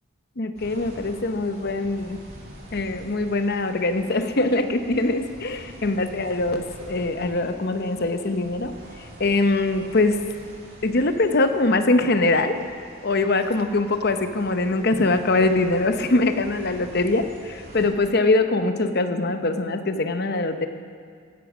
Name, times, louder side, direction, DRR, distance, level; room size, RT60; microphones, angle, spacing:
voice 1, 0.4-2.2 2.7-8.7 9.2-10.2 10.8-12.6 13.0-20.7, left 2 dB, 50° left, 8 dB, 0.8 m, -22 dB
sound 1, 0.5-17.9, equal, 50° right, 3.0 m, -45 dB
15.5 x 11.0 x 6.3 m, 2.1 s
head